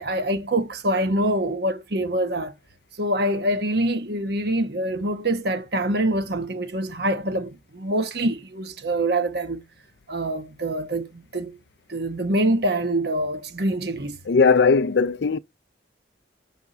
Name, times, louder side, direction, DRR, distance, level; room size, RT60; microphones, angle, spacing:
voice 1, 0.0-2.5 3.0-9.6 10.1-11.6 11.9-14.2, right 1 dB, 60° right, 1.2 m, -25 dB
voice 2, 14.3-15.4, left 5 dB, 65° left, 0.5 m, -18 dB
7.1 x 5.8 x 5.1 m
head